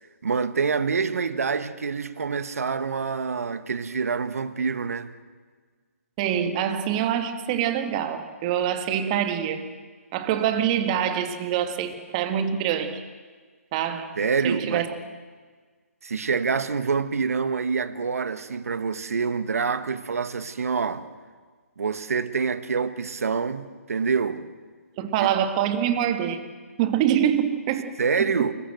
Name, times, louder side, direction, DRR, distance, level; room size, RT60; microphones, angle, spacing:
voice 1, 0.2-5.1 14.2-14.9 16.0-21.1 21.8-24.5 25.2-25.3 28.0-28.5, right 5 dB, 70° right, 1.6 m, -26 dB
voice 2, 6.2-9.6 10.1-13.0 13.7-14.1 14.4-14.9 25.0-26.4 26.8-27.9 28.4-28.5, right 9 dB, 25° right, 1.9 m, -25 dB
26.5 x 22.0 x 7.8 m
hypercardioid pair, 155°, 8 cm